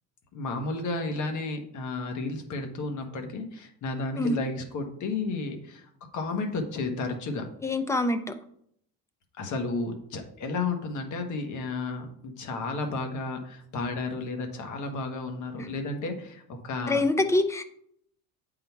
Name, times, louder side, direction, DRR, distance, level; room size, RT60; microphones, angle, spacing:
voice 1, 0.3-5.9 6.1-7.4 9.4-17.0, left 3 dB, 50° left, 5 dB, 1.4 m, -32 dB
voice 2, 7.6-8.4 15.6-15.7 16.9-17.6, left 2 dB, 10° left, 9 dB, 0.4 m, -25 dB
8.5 x 3.9 x 4.6 m, 0.68 s
cardioid pair, 150°, 40 cm